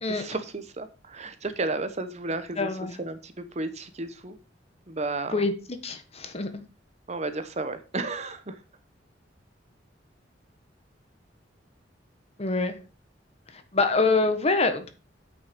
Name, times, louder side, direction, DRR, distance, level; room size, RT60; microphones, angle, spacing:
voice 1, 0.1-2.7 3.0-4.4 4.9-5.4 7.1-8.6, right 2 dB, 40° right, 10 dB, 1.0 m, -33 dB
voice 2, 2.6-2.9 5.3-5.5 5.8-6.6 12.4-12.8 13.5-14.9, left 3 dB, 35° left, 8 dB, 1.3 m, -25 dB
8.6 x 6.5 x 5.2 m, 0.33 s
head